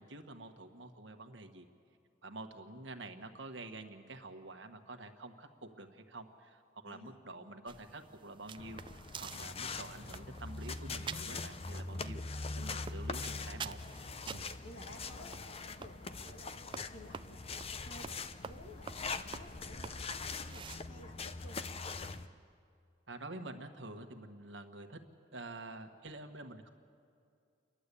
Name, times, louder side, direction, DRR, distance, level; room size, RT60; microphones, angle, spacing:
voice 1, 0.0-1.7 2.2-13.8 14.2-14.4 23.1-25.0 25.3-26.7, right 2 dB, 70° right, 6 dB, 1.5 m, -48 dB
voice 2, 6.9-7.5 9.3-9.5 12.6-12.7 14.3-21.6 22.0-22.1, left 1 dB, 80° left, 4 dB, 2.2 m, -55 dB
sound 1, 7.7-20.8, right 6 dB, 25° right, 0.4 m, -50 dB
sound 2, 8.6-22.3, left 4 dB, 30° left, 0.6 m, -42 dB
30.0 x 11.5 x 8.4 m, 2.4 s
head